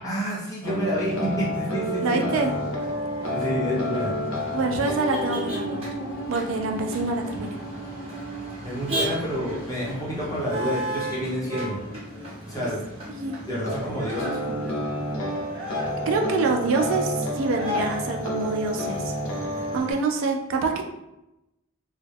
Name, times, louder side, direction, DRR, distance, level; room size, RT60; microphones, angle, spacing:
voice 1, 0.0-2.2 3.3-4.1 8.6-11.8 12.4-12.8 13.5-14.7, equal, 15° left, -7 dB, 0.7 m, -29 dB
sound 1, 0.6-12.5 13.6-19.8, equal, 85° left, 0.6 m, -31 dB
Motor vehicle (road), 0.7-19.9, equal, 25° right, 0.8 m, -36 dB
voice 2, 2.0-2.5 4.5-5.9 6.3-7.6 13.1-13.4 16.1-19.2 19.7-20.8, right 3 dB, 65° right, 3 dB, 0.3 m, -26 dB
2.2 x 2.0 x 3.4 m, 0.90 s
head